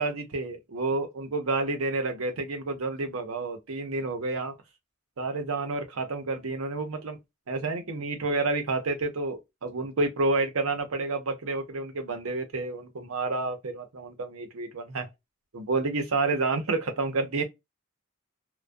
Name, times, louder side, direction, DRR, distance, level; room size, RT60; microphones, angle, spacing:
voice 1, 0.0-4.6 5.2-7.2 7.5-15.1 15.5-17.4, right 3 dB, 85° right, 0.7 m, -29 dB
2.2 x 2.2 x 2.5 m
head